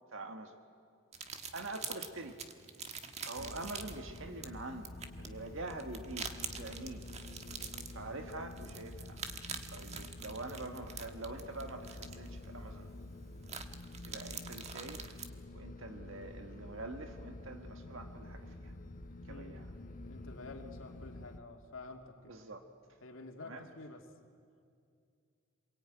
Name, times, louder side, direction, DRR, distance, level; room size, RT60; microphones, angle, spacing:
voice 1, 0.1-0.6 1.5-2.4 3.2-4.9 5.2-7.0 7.9-9.2 9.4-12.9 14.0-15.1 15.5-18.7 19.3-19.6 22.3-22.6 23.4-23.7, right 2 dB, 75° right, 5 dB, 1.7 m, -45 dB
sound 1, 1.1-15.3, right 6 dB, 35° right, 1.4 m, -46 dB
sound 2, 3.4-21.4, left 2 dB, 45° left, 1.3 m, -48 dB
voice 2, 19.3-19.6 20.1-22.3 23.0-24.1, left 3 dB, 85° left, 3 dB, 2.5 m, -49 dB
27.0 x 22.0 x 9.2 m, 2.3 s
head